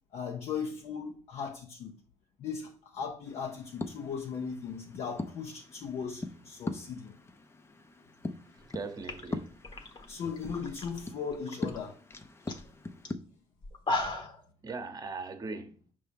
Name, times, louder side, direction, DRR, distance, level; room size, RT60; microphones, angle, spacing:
voice 1, 0.1-1.9 2.4-7.1 10.1-12.0, left 6 dB, 70° left, 0.9 m, -38 dB
sound 1, 3.3-13.1, left 2 dB, 25° left, 0.7 m, -42 dB
sound 2, 8.6-8.7 9.0-11.0 11.3-11.8 12.1-12.2 12.5-12.7 13.0-13.1 13.6-14.4, left 2 dB, 45° left, 1.2 m, -36 dB
voice 2, 8.6-9.6 14.6-15.7, right 4 dB, 35° right, 1.0 m, -39 dB
5.6 x 3.4 x 5.2 m
cardioid pair, 90°, 11 cm